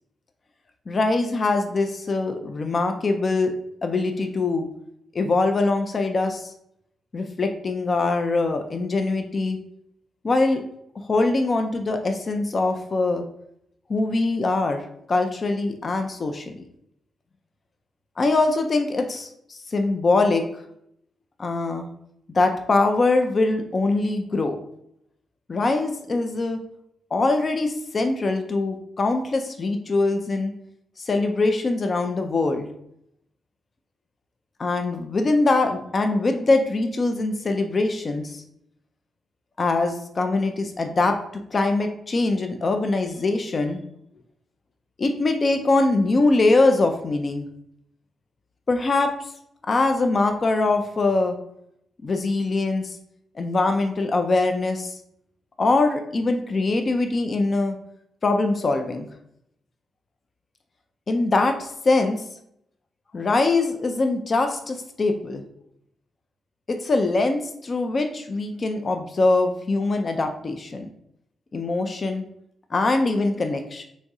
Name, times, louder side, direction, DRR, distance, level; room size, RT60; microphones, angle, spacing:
voice 1, 0.9-3.5 3.8-4.7 5.1-6.5 7.1-9.6 10.2-10.6 11.0-13.2 13.9-14.8 15.1-16.6 18.2-20.4 21.4-21.9 22.3-24.6 25.5-26.6 27.1-30.5 31.0-32.7 34.6-38.4 39.6-41.2 41.5-43.8 45.0-47.5 48.7-49.1 49.7-51.4 52.0-53.0 53.4-54.9 55.6-57.8 58.2-59.1 61.1-62.2 63.1-65.4 66.7-70.9 71.5-72.2 72.7-73.9, left 3 dB, 45° left, 5 dB, 0.4 m, -23 dB
3.1 x 2.6 x 3.5 m, 0.74 s
hypercardioid pair, 40°, 0 cm